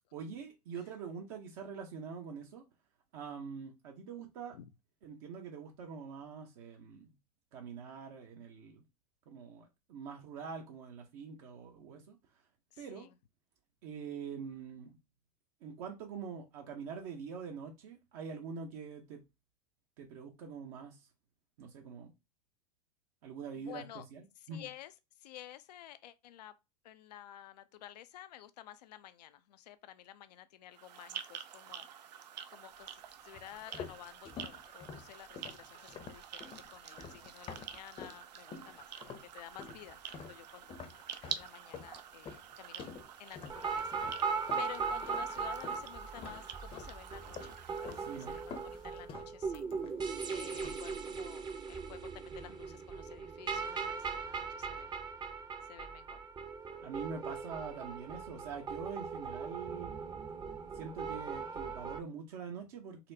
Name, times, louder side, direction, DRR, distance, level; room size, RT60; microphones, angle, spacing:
voice 1, 0.1-2.6 3.1-4.6 5.0-7.1 7.5-8.8 9.3-12.2 12.8-13.1 13.8-15.0 15.6-19.2 20.0-21.0 21.6-22.1 23.2-23.8 24.1-24.7 48.0-48.4 56.8-60.0 60.7-63.1, right 6 dB, 60° right, 0.8 m, -44 dB
voice 2, 12.7-13.1 23.5-24.0 24.4-26.6 26.8-31.9 32.5-40.8 41.2-42.9 43.2-44.3 44.6-47.6 47.8-49.6 50.3-54.9 55.7-56.2, left 12 dB, 80° left, 0.4 m, -52 dB
sound 1, 30.7-49.2, right 9 dB, 85° right, 0.4 m, -48 dB
sound 2, 33.3-38.2 38.5-39.3 39.6-45.9 46.2-47.0 47.3-48.1 48.3-50.2 50.5-50.9, left 6 dB, 25° left, 0.6 m, -48 dB
sound 3, 43.5-62.0, right 5 dB, 20° right, 0.6 m, -39 dB
4.1 x 2.1 x 2.7 m
hypercardioid pair, 105°, 21 cm